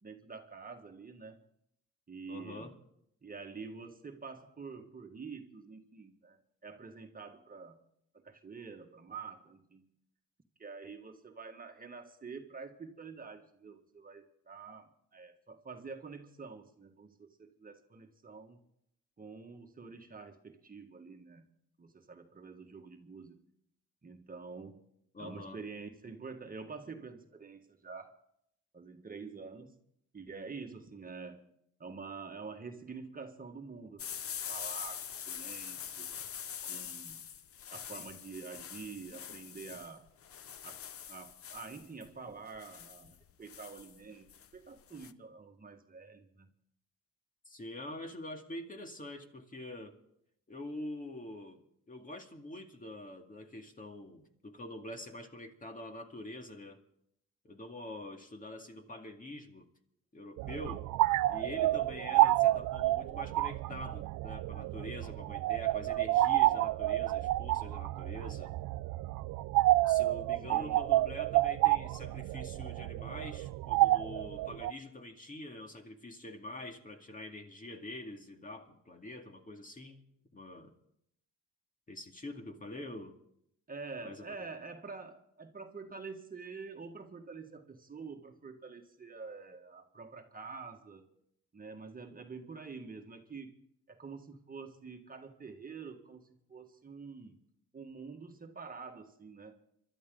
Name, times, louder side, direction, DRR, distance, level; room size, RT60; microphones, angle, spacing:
voice 1, 0.0-1.4 2.1-2.7 3.2-7.8 8.1-9.9 10.6-18.6 19.2-21.5 21.8-23.4 24.0-24.8 25.2-28.2 28.7-29.8 30.1-31.5 31.8-34.1 34.5-36.1 36.6-37.2 37.7-40.1 40.6-46.5 70.5-70.8 83.7-91.1 91.5-93.6 93.9-97.5 97.7-99.6, right 4 dB, 30° right, 1.6 m, -47 dB
voice 2, 2.3-2.8 25.1-25.6 47.5-50.0 50.5-56.8 57.4-59.7 60.1-60.9 61.3-68.5 69.8-80.0 80.3-80.7 81.9-83.2 84.0-84.5, left 1 dB, 25° left, 2.1 m, -45 dB
sound 1, 34.0-45.1, left 9 dB, 50° left, 0.8 m, -44 dB
sound 2, 60.4-74.7, right 16 dB, 85° right, 0.5 m, -29 dB
27.0 x 12.5 x 3.8 m
cardioid pair, 90°, 30 cm